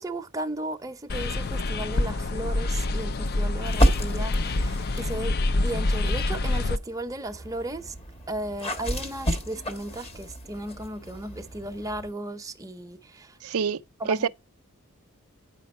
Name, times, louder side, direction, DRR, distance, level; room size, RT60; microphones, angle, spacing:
voice 1, 0.0-7.9 8.3-13.4 14.0-14.3, right 1 dB, 15° right, 0.7 m, -35 dB
sound 1, 1.1-6.8, left 2 dB, 45° left, 0.4 m, -26 dB
sound 2, 3.6-5.2 5.9-12.1, equal, 30° left, 1.3 m, -30 dB
voice 2, 13.4-13.8 14.1-14.3, right 6 dB, 80° right, 0.5 m, -25 dB
9.3 x 5.1 x 4.3 m
head